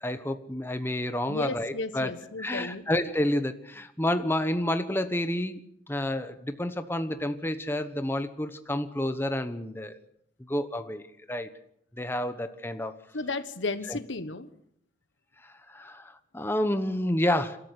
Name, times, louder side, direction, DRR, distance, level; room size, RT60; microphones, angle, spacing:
voice 1, 0.0-2.1 2.4-10.0 10.4-11.5 12.0-13.0 13.9-14.0 15.4-17.6, left 1 dB, 10° left, 9 dB, 1.1 m, -30 dB
voice 2, 1.3-2.9 13.1-14.5, left 3 dB, 80° left, 12 dB, 1.4 m, -34 dB
27.5 x 13.5 x 8.1 m, 0.74 s
head